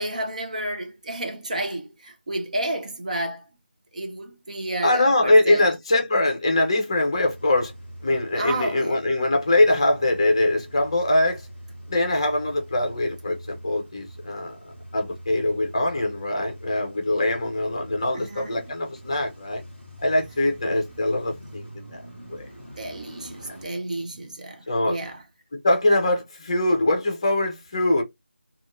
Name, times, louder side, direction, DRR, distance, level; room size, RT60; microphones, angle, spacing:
voice 1, 0.0-3.5 3.9-5.6 8.3-9.0 18.1-18.7 22.8-25.2, right 1 dB, 40° right, 0.6 m, -31 dB
voice 2, 4.8-7.7 8.0-11.4 11.9-14.6 14.9-19.6 20.0-22.0 22.3-22.5 24.7-25.0 25.6-28.0, left 1 dB, 30° left, 0.7 m, -22 dB
Car / Engine starting / Idling, 7.1-23.7, right 1 dB, 10° right, 1.2 m, -43 dB
2.7 x 2.4 x 3.1 m
figure-of-eight pair, 170°, 6 cm